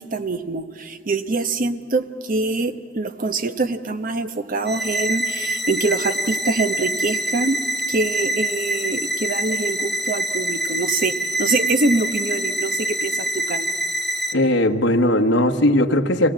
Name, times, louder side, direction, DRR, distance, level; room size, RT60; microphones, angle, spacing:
voice 1, 0.0-7.6 7.9-13.7, right 3 dB, 50° right, 10 dB, 0.9 m, -24 dB
sound 1, 4.7-14.3, right 1 dB, ahead, 0.7 m, -25 dB
voice 2, 14.3-16.3, left 1 dB, 75° left, 4 dB, 1.1 m, -18 dB
25.0 x 18.0 x 8.7 m, 2.3 s
head